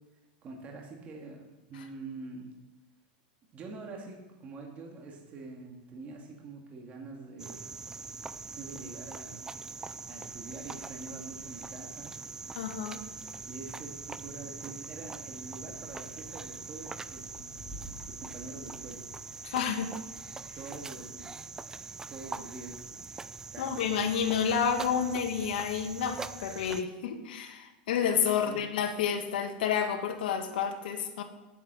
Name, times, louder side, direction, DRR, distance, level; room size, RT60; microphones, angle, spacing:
voice 1, 0.4-2.5 3.5-7.8 8.5-9.4 10.0-12.1 13.4-17.8 18.0-19.1 20.5-21.5 22.1-23.0 23.5-23.8 28.4-28.7, right 3 dB, 25° right, 0 dB, 2.1 m, -45 dB
Cricket, 7.4-26.8, right 4 dB, 10° right, 0.5 m, -43 dB
voice 2, 12.6-13.0 19.4-19.9 23.6-31.2, left 7 dB, 80° left, 5 dB, 1.8 m, -30 dB
Thunder / Rain, 13.4-21.5, equal, 5° left, 3.0 m, -53 dB
9.8 x 9.3 x 7.5 m, 1.1 s
supercardioid pair, 145°, 5 cm